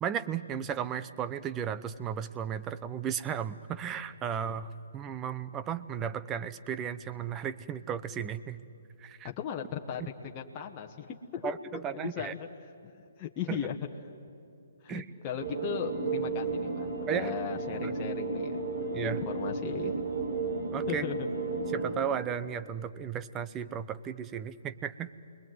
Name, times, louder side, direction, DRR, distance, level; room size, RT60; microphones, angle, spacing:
voice 1, 0.0-8.6 9.0-9.3 10.0-10.1 11.4-12.3 13.5-13.6 14.9-15.1 17.1-17.3 17.8-17.9 18.9-19.2 20.7-21.1 21.7-25.1, right 8 dB, 20° right, 13 dB, 0.9 m, -35 dB
voice 2, 9.2-11.6 11.9-12.5 12.8-13.8 14.8-18.6 19.0-19.9 20.9-21.2, left 9 dB, 30° left, 1 dB, 1.5 m, -37 dB
sound 1, 15.4-22.0, right 3 dB, 60° right, 4.6 m, -33 dB
29.5 x 21.5 x 9.4 m, 2.8 s
figure-of-eight pair, 135°, 0 cm